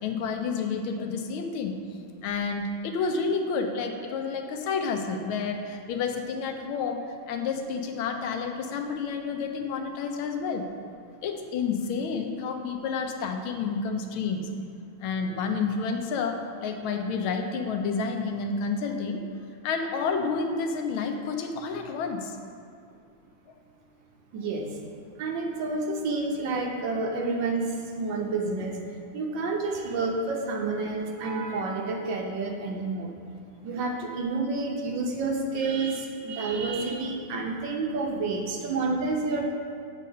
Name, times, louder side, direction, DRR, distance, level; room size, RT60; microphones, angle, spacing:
voice 1, 0.0-1.8 2.2-10.7 11.2-14.5 15.0-19.2 19.6-22.4, left 5 dB, 80° left, 4 dB, 1.5 m, -30 dB
voice 2, 24.3-24.7 25.2-27.7 28.0-28.8 29.1-33.1 33.6-39.5, right 3 dB, 65° right, 1 dB, 1.4 m, -29 dB
8.2 x 4.0 x 5.5 m, 2.3 s
omnidirectional pair, 2.3 m